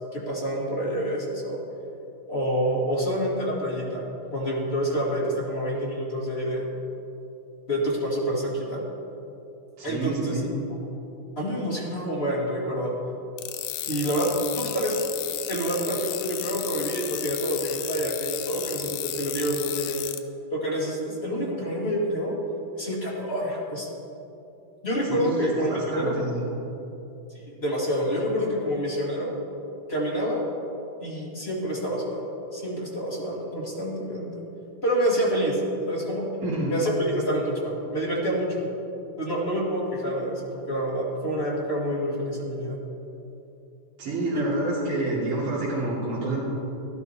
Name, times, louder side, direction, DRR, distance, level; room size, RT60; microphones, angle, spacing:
voice 1, 0.1-1.6 2.3-6.6 7.7-8.8 9.8-10.4 11.4-12.9 13.9-14.9 15.5-20.0 20.5-22.4 22.8-23.9 24.8-26.1 27.3-29.3 29.9-30.4 31.0-34.4 34.8-35.6 35.9-36.3 36.7-38.7 39.2-42.8 44.3-44.5, equal, 25° left, -4 dB, 1.4 m, -27 dB
voice 2, 9.8-10.5 25.1-26.4 36.4-36.8 44.0-46.4, right 2 dB, 40° right, -9 dB, 3.4 m, -28 dB
sound 1, 13.4-20.2, left 13 dB, 85° left, 2.3 m, -33 dB
15.0 x 11.5 x 4.3 m, 2.9 s
omnidirectional pair, 3.7 m